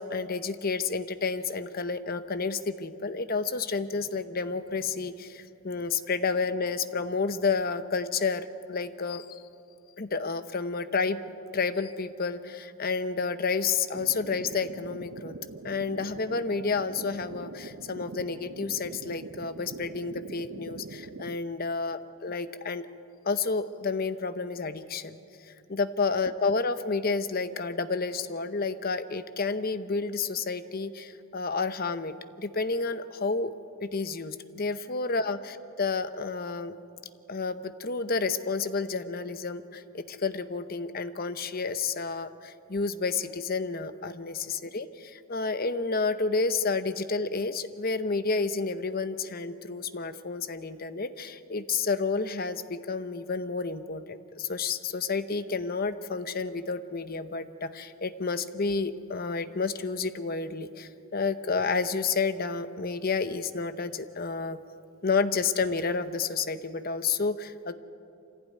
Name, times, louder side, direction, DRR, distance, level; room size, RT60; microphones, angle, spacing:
voice 1, 0.0-9.4 10.0-11.2 11.5-15.4 15.6-22.9 23.2-25.2 25.4-33.5 33.8-35.4 35.8-36.7 37.3-64.6 65.0-67.7, left 4 dB, 45° left, 12 dB, 0.8 m, -30 dB
sound 1, 13.9-21.4, right 3 dB, 65° right, 0.7 m, -43 dB
25.0 x 16.0 x 9.4 m, 2.7 s
head